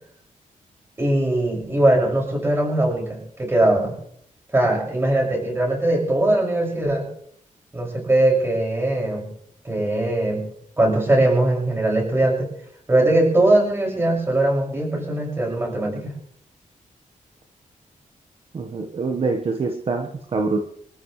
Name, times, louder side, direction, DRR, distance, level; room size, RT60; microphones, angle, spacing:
voice 1, 1.0-3.9 4.5-7.1 7.7-9.3 9.6-10.4 10.8-12.5 12.9-16.1, right 1 dB, 20° right, -2 dB, 6.2 m, -20 dB
voice 2, 18.5-20.6, right 4 dB, 45° right, 3 dB, 1.4 m, -25 dB
25.5 x 14.0 x 3.3 m, 0.67 s
wide cardioid pair, 175°, 14 cm